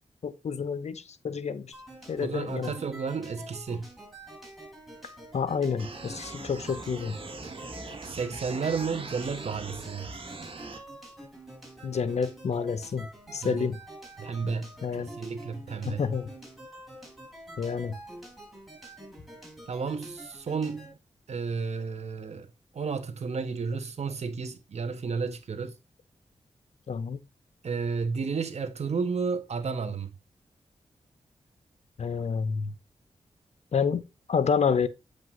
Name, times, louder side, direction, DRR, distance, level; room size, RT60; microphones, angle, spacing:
voice 1, 0.2-1.7 2.1-2.7 5.3-7.2 11.8-13.8 14.8-15.1 15.9-16.3 17.6-17.9 26.9-27.2 32.0-32.7 33.7-34.0 34.3-34.9, left 6 dB, 65° left, 0.9 m, -29 dB
sound 1, 1.7-20.9, right 1 dB, ahead, 4.0 m, -47 dB
voice 2, 2.2-3.9 8.1-10.1 13.4-13.7 14.2-14.7 15.0-16.1 19.7-21.0 21.3-22.5 22.7-25.8 27.6-30.1, right 5 dB, 65° right, 1.4 m, -32 dB
sound 2, 5.8-10.8, right 3 dB, 50° right, 1.9 m, -41 dB
7.9 x 5.3 x 3.9 m
cardioid pair, 80°, 12 cm